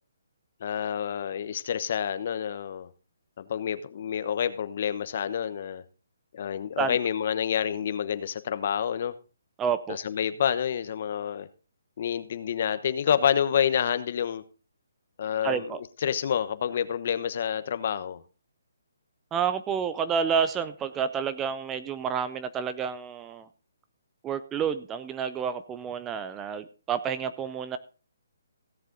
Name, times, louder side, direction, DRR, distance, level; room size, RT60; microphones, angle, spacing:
voice 1, 0.6-2.9 3.4-5.8 6.3-9.1 9.9-11.5 12.0-14.4 15.2-18.2, left 8 dB, 45° left, 12 dB, 1.0 m, -28 dB
voice 2, 9.6-10.0 15.4-15.8 19.3-23.5 24.2-27.8, right 7 dB, 15° right, 12 dB, 0.6 m, -29 dB
16.5 x 7.4 x 3.9 m, 0.34 s
hypercardioid pair, 160°, 0 cm